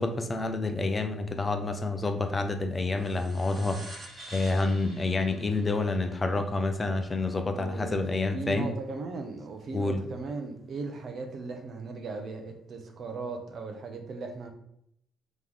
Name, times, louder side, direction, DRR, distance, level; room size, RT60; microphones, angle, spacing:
voice 1, 0.0-8.7 9.7-10.0, left 3 dB, 25° left, 6 dB, 0.6 m, -28 dB
sound 1, 3.0-7.9, right 1 dB, 25° right, 1.4 m, -49 dB
voice 2, 7.5-8.0 8.3-14.5, right 3 dB, 60° right, 4 dB, 0.7 m, -37 dB
3.8 x 3.1 x 3.6 m, 0.72 s
cardioid pair, 90°, 0 cm